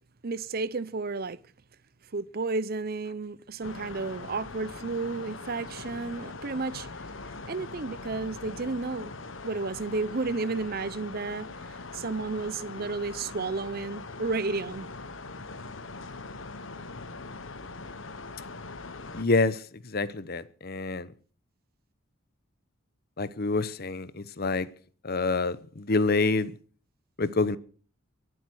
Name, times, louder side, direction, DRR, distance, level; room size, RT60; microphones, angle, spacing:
voice 1, 0.2-1.4 2.1-6.9 7.5-9.1 9.4-14.9, right 3 dB, 45° right, 0.7 m, -32 dB
sound 1, 3.6-19.2, left 3 dB, 70° left, 1.3 m, -41 dB
voice 2, 19.1-19.6 19.8-21.1 23.2-24.7 25.0-26.5 27.2-27.6, left 3 dB, 50° left, 0.9 m, -27 dB
23.0 x 7.9 x 6.3 m
head